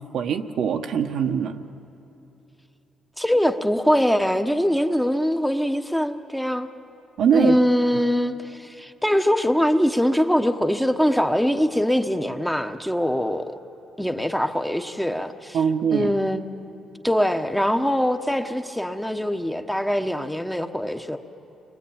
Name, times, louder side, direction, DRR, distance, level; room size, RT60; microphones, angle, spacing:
voice 1, 0.0-1.6 7.2-7.6 15.5-16.1, right 7 dB, 70° right, 5 dB, 1.2 m, -22 dB
voice 2, 3.2-6.7 7.3-13.5 14.0-15.6 15.9-16.4 17.0-21.2, equal, 5° left, 6 dB, 1.1 m, -22 dB
29.5 x 22.0 x 8.8 m, 2.9 s
cardioid pair, 90°, 0 cm